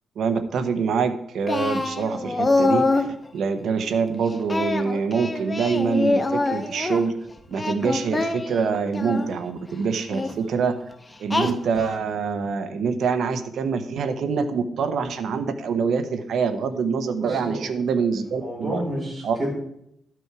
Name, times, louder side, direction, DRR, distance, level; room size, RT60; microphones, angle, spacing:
voice 1, 0.2-3.1 3.3-7.1 7.5-10.7 11.2-18.8 19.2-19.4, right 5 dB, 70° right, 9 dB, 0.9 m, -25 dB
Singing, 1.5-3.1 4.5-7.0 7.5-9.3 10.1-10.3 11.3-11.9, left 2 dB, 20° left, 0.9 m, -24 dB
voice 2, 17.2-17.6 18.4-19.5, right 1 dB, 25° right, -6 dB, 4.8 m, -30 dB
12.0 x 6.1 x 4.8 m, 0.75 s
cardioid pair, 125°, 0 cm